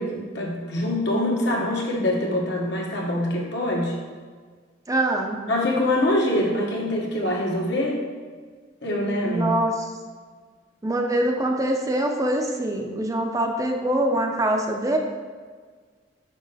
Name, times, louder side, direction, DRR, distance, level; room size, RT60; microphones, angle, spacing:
voice 1, 0.0-4.0 5.5-8.0 8.8-9.6, left 1 dB, 65° left, -2 dB, 1.3 m, -24 dB
voice 2, 4.9-5.4 9.2-9.9 10.8-15.0, right 1 dB, 20° right, 2 dB, 0.5 m, -24 dB
6.1 x 5.4 x 4.1 m, 1.5 s
head